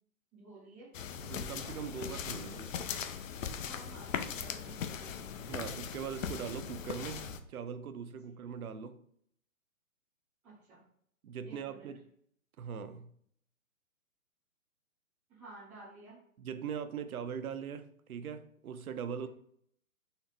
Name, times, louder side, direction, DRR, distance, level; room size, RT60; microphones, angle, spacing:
voice 1, 0.3-0.9 3.7-5.3 10.4-10.8 11.4-11.9 15.3-16.2 19.2-19.3, right 3 dB, 5° right, 0.4 m, -53 dB
sound 1, 0.9-7.4, left 7 dB, 65° left, 0.5 m, -39 dB
voice 2, 1.2-3.0 5.5-9.0 11.2-12.1 12.6-13.1 16.4-19.3, right 7 dB, 85° right, 0.6 m, -41 dB
4.1 x 2.0 x 4.1 m
hypercardioid pair, 145°, 42 cm